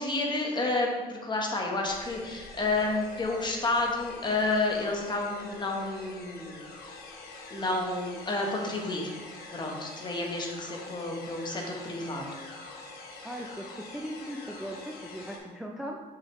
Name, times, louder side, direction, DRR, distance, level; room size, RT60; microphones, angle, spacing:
voice 1, 0.0-6.7 7.5-9.1 9.5-12.4, left 2 dB, 25° left, 0 dB, 1.2 m, -30 dB
sound 1, 1.8-15.4, left 3 dB, 70° left, 1.2 m, -45 dB
voice 2, 13.2-16.0, equal, ahead, 0 dB, 0.5 m, -38 dB
5.9 x 5.4 x 3.2 m, 1.3 s
cardioid pair, 110°, 17 cm